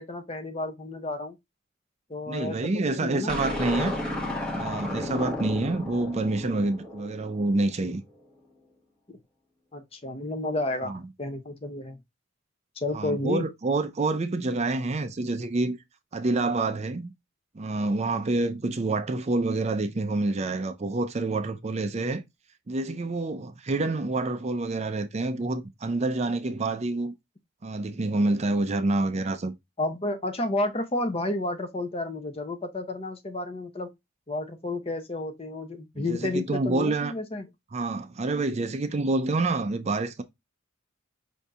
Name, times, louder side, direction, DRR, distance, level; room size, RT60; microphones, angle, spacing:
voice 1, 0.0-1.4 2.1-2.6 3.0-3.3 9.1-9.2 9.7-12.0 12.8-13.5 29.8-33.9 34.3-37.5, left 2 dB, 30° left, 0.7 m, -31 dB
voice 2, 2.3-3.9 4.5-8.0 10.8-11.0 12.9-15.8 16.1-17.1 17.5-22.2 22.7-27.1 27.6-29.5 36.0-37.1 37.7-40.2, right 2 dB, 35° right, 0.4 m, -27 dB
sound 1, 3.3-7.7, left 1 dB, 5° left, 1.0 m, -33 dB
5.4 x 2.7 x 3.4 m
head